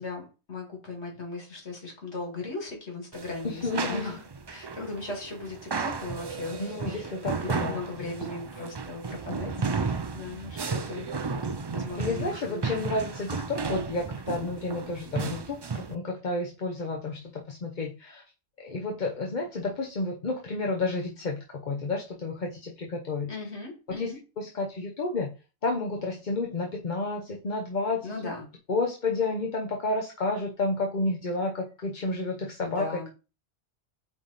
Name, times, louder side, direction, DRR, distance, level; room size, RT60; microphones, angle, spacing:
voice 1, 0.0-4.2 4.5-11.4 11.7-12.8 23.3-24.2 28.0-28.5 32.6-33.1, left 3 dB, 90° left, -1 dB, 2.6 m, -38 dB
sound 1, 3.1-15.9, right 4 dB, 40° right, 0.3 m, -34 dB
voice 2, 3.4-4.2 6.6-8.2 9.3-9.4 12.0-18.2 18.6-23.3 24.0-25.3 25.6-28.1 28.7-33.1, left 3 dB, 45° left, 1 dB, 1.0 m, -31 dB
8.6 x 3.3 x 4.1 m, 0.32 s
omnidirectional pair, 1.1 m